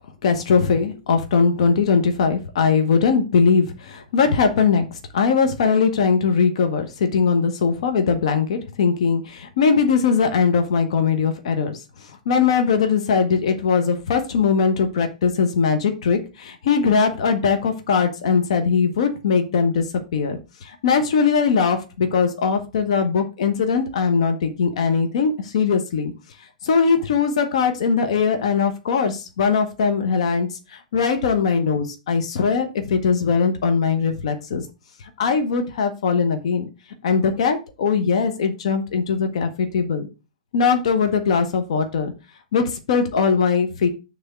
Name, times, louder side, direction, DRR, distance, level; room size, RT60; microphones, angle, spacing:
voice 1, 0.2-4.9 5.1-19.8 20.1-26.1 26.6-34.7 35.2-36.7 37.0-40.1 40.5-42.1 42.5-43.9, left 5 dB, 55° left, 6 dB, 1.1 m, -20 dB
6.4 x 3.6 x 5.9 m, 0.30 s
figure-of-eight pair, 110°, 4 cm